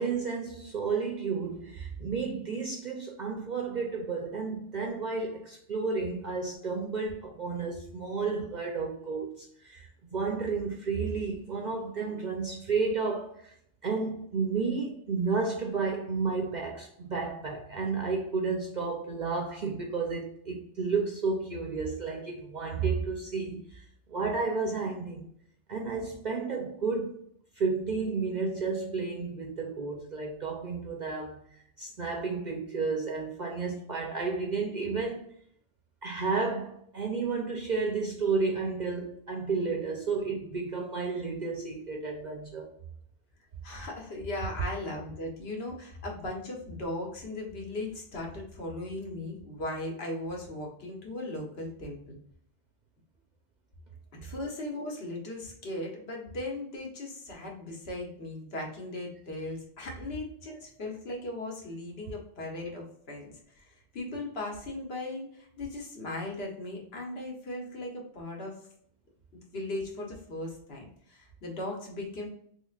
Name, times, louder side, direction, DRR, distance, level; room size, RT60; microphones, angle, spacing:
voice 1, 0.0-13.6 13.8-25.2 25.7-27.2 27.6-31.4 31.8-35.3 36.0-42.7, right 4 dB, 50° right, 0.6 m, -32 dB
voice 2, 43.6-52.2 54.2-68.5 69.3-72.3, left 2 dB, 60° left, 1.2 m, -38 dB
3.6 x 3.2 x 2.4 m
omnidirectional pair, 1.2 m